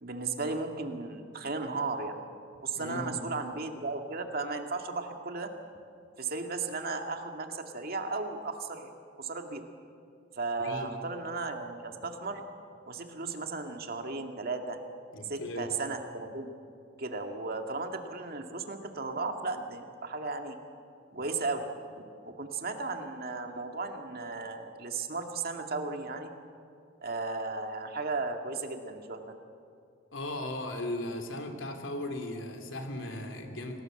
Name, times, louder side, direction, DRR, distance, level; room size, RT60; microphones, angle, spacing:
voice 1, 0.0-2.2 2.6-5.5 6.2-9.6 10.3-12.4 12.9-14.8 15.3-16.5 17.0-20.6 21.1-21.7 22.0-26.3 27.0-29.3, right 3 dB, 50° right, 4 dB, 2.1 m, -35 dB
voice 2, 2.7-3.3 10.6-10.9 15.1-15.7 30.1-33.8, left 1 dB, 85° left, 5 dB, 3.1 m, -37 dB
27.5 x 19.0 x 7.9 m, 2.4 s
head